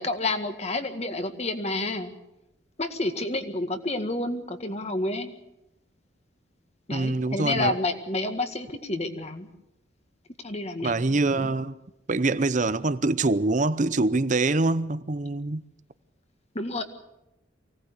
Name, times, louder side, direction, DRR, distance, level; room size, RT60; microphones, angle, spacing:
voice 1, 0.0-2.1 2.8-5.3 6.9-9.5 10.4-11.5 16.5-16.8, left 2 dB, 35° left, 1.9 m, -30 dB
voice 2, 6.9-7.7 10.8-11.7 12.1-15.6, right 2 dB, 40° right, 0.7 m, -24 dB
24.0 x 17.5 x 8.2 m
head